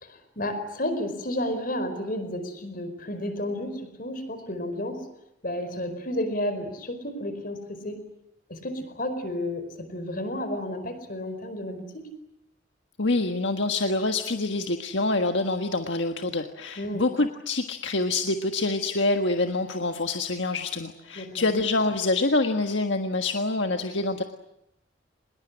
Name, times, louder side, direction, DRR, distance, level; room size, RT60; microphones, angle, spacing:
voice 1, 0.0-5.0 5.4-8.1 8.5-12.0 16.8-17.0 21.2-21.5, left 1 dB, 50° left, 10 dB, 4.8 m, -32 dB
voice 2, 13.0-24.2, left 2 dB, 75° left, 5 dB, 1.6 m, -26 dB
25.0 x 21.5 x 10.0 m, 0.85 s
head